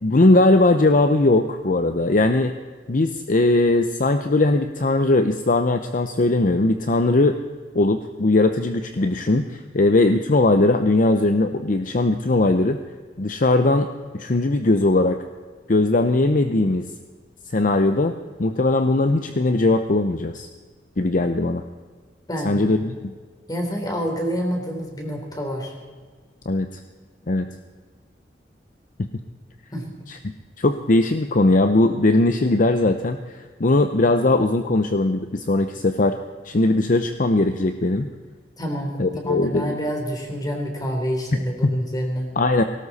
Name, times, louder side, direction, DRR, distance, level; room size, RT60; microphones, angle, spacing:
voice 1, 0.0-2.5 2.9-7.4 7.7-12.8 13.2-13.9 14.1-15.2 15.7-16.8 17.5-18.1 18.4-20.5 21.0-21.6 22.4-23.1 26.5-26.7 27.3-27.5 29.0-29.1 30.1-30.2 30.6-36.2 36.5-38.1 39.0-39.8 41.6-41.7 42.4-42.6, left 2 dB, 50° left, 8 dB, 0.7 m, -19 dB
voice 2, 22.3-22.7 23.5-25.7 29.7-29.9 38.6-42.3, equal, 20° left, 2 dB, 3.4 m, -27 dB
19.0 x 17.5 x 4.2 m, 1.5 s
head